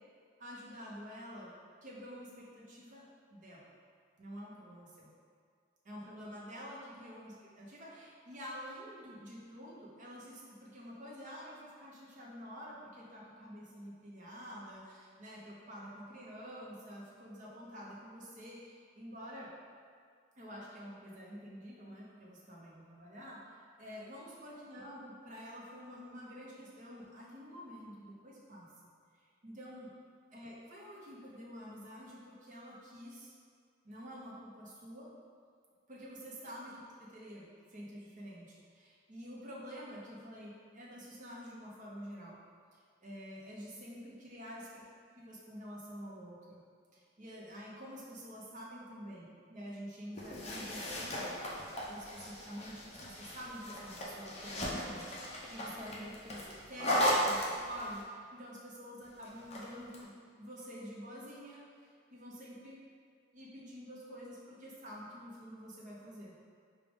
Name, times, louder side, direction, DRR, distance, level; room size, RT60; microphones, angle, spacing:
voice 1, 0.4-1.5 1.8-3.6 4.2-5.1 5.8-19.5 20.4-28.7 29.4-29.9 30.3-33.3 33.8-35.1 35.9-42.4 42.7-44.8 45.2-46.6 46.9-51.1 51.8-56.9 57.2-60.1 60.4-61.6 62.1-62.8 63.3-66.3, equal, 40° right, -5 dB, 0.9 m, -48 dB
sound 1, 50.1-58.0 59.2-60.0, equal, 35° left, 0.6 m, -36 dB
5.0 x 2.4 x 3.5 m, 2.1 s
head